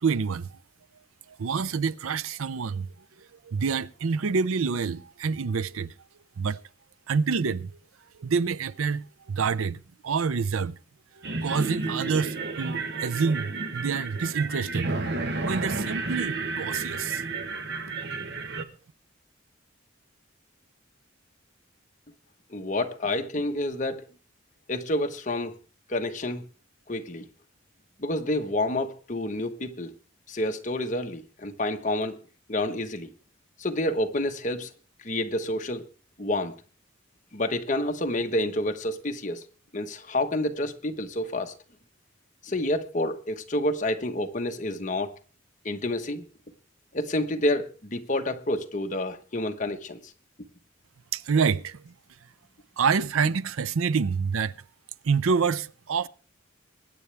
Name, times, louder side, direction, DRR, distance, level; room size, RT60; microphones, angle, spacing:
voice 1, 0.0-0.5 1.4-2.9 3.5-5.9 6.4-6.6 7.1-7.7 8.2-10.8 11.2-14.9 15.5-17.2 51.1-51.9 52.8-54.5 55.0-56.1, right 5 dB, 85° right, 0.5 m, -27 dB
sound 1, 11.2-18.6, right 3 dB, 55° right, 1.1 m, -31 dB
voice 2, 22.5-24.0 24.7-25.6 25.9-26.4 26.9-27.2 28.0-29.9 30.3-32.2 32.5-33.1 33.6-34.7 35.0-35.8 36.2-36.6 37.3-39.4 39.7-41.5 42.4-45.1 45.6-46.3 46.9-50.1, left 1 dB, 35° left, 1.2 m, -29 dB
23.5 x 9.9 x 3.4 m
head